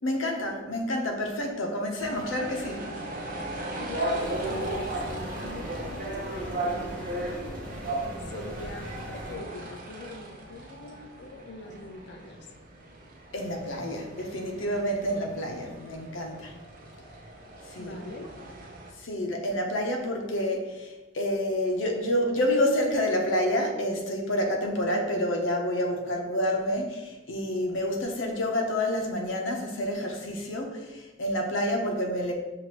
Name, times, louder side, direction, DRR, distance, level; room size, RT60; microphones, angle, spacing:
voice 1, 0.0-2.9 13.3-16.5 17.7-17.9 19.0-32.3, left 1 dB, 85° left, 2 dB, 0.8 m, -28 dB
sound 1, 2.0-18.9, right 1 dB, 45° right, 0.6 m, -36 dB
voice 2, 3.8-7.5 8.2-12.5 17.8-18.3, left 2 dB, 60° left, 3 dB, 0.5 m, -42 dB
sound 2, 4.2-9.3, left 1 dB, 5° left, 0.8 m, -42 dB
5.8 x 2.6 x 2.9 m, 1.1 s
head